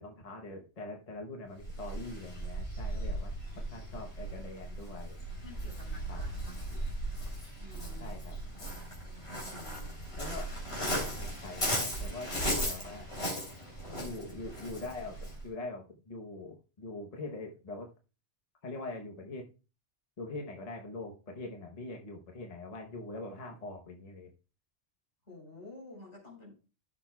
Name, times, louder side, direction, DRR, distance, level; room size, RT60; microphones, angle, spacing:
voice 1, 0.0-5.2 6.1-6.2 8.0-8.4 10.1-10.5 10.8-13.1 14.0-15.2 15.4-17.9 18.6-19.5 20.2-24.3, left 2 dB, 35° left, 2 dB, 1.0 m, -43 dB
Waves surf, 1.6-15.5, equal, 60° left, 3.5 m, -37 dB
voice 2, 5.4-6.3 7.6-8.1 9.4-10.0 25.3-26.5, left 2 dB, 80° left, -2 dB, 4.1 m, -50 dB
15.0 x 6.3 x 2.3 m, 0.34 s
omnidirectional pair, 1.2 m